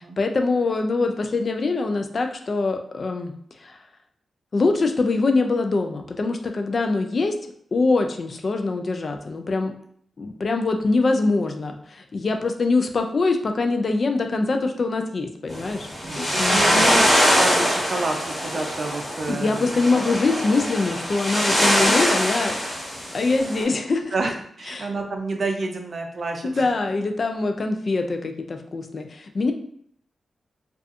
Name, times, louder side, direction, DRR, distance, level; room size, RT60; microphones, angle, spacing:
voice 1, 0.2-3.3 3.6-3.8 4.5-7.4 7.7-9.7 10.2-15.9 16.2-16.9 19.3-22.6 23.1-24.1 24.7-24.9 26.4-29.5, left 3 dB, 55° left, 6 dB, 0.3 m, -23 dB
sound 1, 15.5-23.6, equal, 20° left, 1.4 m, -23 dB
voice 2, 16.0-19.8 21.3-21.7 22.1-22.3 24.1-26.6, right 3 dB, 55° right, 3 dB, 0.4 m, -29 dB
2.5 x 2.4 x 2.4 m, 0.64 s
cardioid pair, 65°, 0 cm